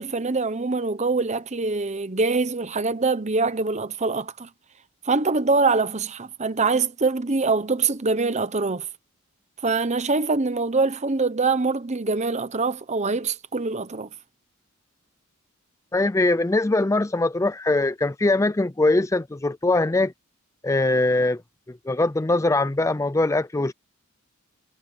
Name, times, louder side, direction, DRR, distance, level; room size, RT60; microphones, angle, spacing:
voice 1, 0.0-4.5 5.0-8.9 9.6-14.1, right 3 dB, 30° right, 0.9 m, -24 dB
voice 2, 15.9-20.1 20.6-21.4 21.9-23.7, left 2 dB, 15° left, 0.4 m, -22 dB
head